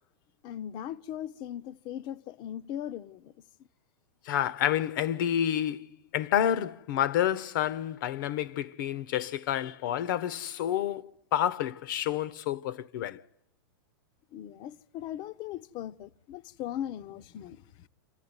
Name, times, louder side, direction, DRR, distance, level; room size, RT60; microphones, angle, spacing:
voice 1, 0.4-3.3 14.3-17.9, left 11 dB, 40° left, 0.8 m, -39 dB
voice 2, 4.2-13.2, left 11 dB, 60° left, 1.1 m, -29 dB
26.5 x 14.5 x 9.6 m
hypercardioid pair, 130°, 12 cm